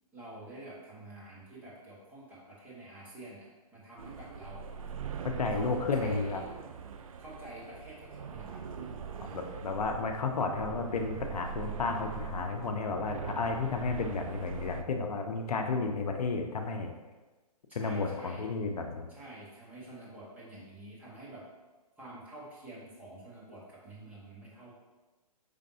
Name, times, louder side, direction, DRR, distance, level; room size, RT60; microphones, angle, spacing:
voice 1, 0.1-4.9 5.5-6.5 7.2-9.4 17.7-18.4 19.1-21.4 22.0-24.8, right 1 dB, 5° right, -8 dB, 1.1 m, -48 dB
sound 1, 4.0-14.8, right 7 dB, 60° right, 0.4 m, -42 dB
voice 2, 5.2-6.4 9.3-16.9 17.7-19.1, left 4 dB, 75° left, 4 dB, 0.6 m, -32 dB
5.1 x 3.4 x 2.7 m, 1.2 s
hypercardioid pair, 135°, 20 cm